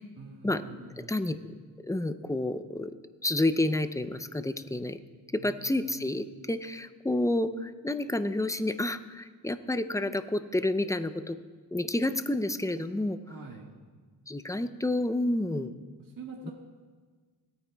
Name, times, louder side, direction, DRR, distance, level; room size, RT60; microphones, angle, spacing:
voice 1, 0.2-1.3 5.4-5.9 13.3-13.7 16.0-16.5, right 4 dB, 50° right, 0 dB, 1.6 m, -45 dB
voice 2, 1.0-1.4 1.9-2.9 3.2-5.0 5.3-11.4 11.7-13.2 14.3-15.7, left 1 dB, 10° left, 11 dB, 0.5 m, -29 dB
18.5 x 9.1 x 2.3 m, 1.5 s
cardioid pair, 55°, 43 cm